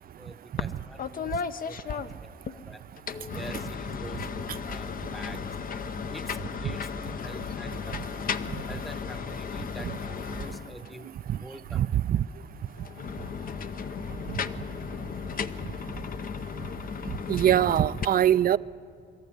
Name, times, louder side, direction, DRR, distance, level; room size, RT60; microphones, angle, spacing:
voice 1, 0.2-2.9 3.3-4.3 4.7-5.5 6.1-8.1 8.7-11.1 11.4-11.8, equal, ahead, 12 dB, 0.9 m, -46 dB
sound 1, 0.6-0.7 1.0-2.6 3.0-11.0 12.8-18.0, left 6 dB, 45° left, 0.7 m, -35 dB
voice 2, 11.7-12.2 17.3-18.6, right 11 dB, 50° right, 18 dB, 0.4 m, -22 dB
21.5 x 14.0 x 9.8 m, 2.7 s
cardioid pair, 90°, 20 cm